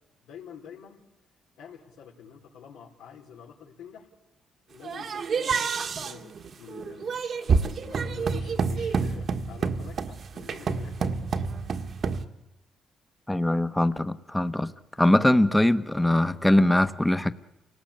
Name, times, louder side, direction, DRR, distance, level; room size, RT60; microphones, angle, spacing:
voice 1, 0.2-1.0 1.6-4.1 4.7-11.3, left 7 dB, 90° left, 4.4 m, -47 dB
sound 1, 4.8-12.2, right 5 dB, 55° right, 1.7 m, -28 dB
voice 2, 13.3-14.7 15.0-17.3, left 1 dB, 10° left, 1.2 m, -22 dB
29.0 x 18.5 x 8.7 m
cardioid pair, 90°, 0 cm